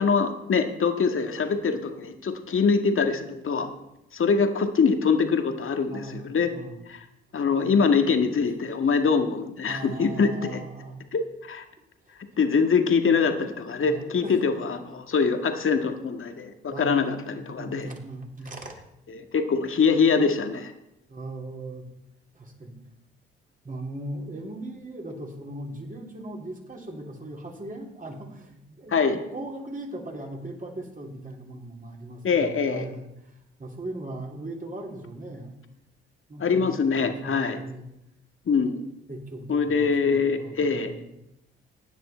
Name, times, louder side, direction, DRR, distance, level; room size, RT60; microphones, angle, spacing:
voice 1, 0.0-3.7 4.1-6.5 6.9-7.0 7.3-10.6 11.1-11.6 12.4-17.9 19.1-20.7 28.9-29.2 32.2-32.9 36.4-37.6 38.5-38.8 39.5-40.9, left 5 dB, 45° left, 6 dB, 1.8 m, -24 dB
voice 2, 5.9-6.8 9.7-11.0 12.1-12.2 13.8-14.4 16.7-18.8 21.1-21.9 22.3-22.8 23.6-33.3 33.6-35.6 36.3-37.9 39.1-41.1, right 2 dB, 25° right, 0 dB, 3.6 m, -38 dB
16.0 x 9.8 x 4.5 m, 0.85 s
hypercardioid pair, 50°, 30 cm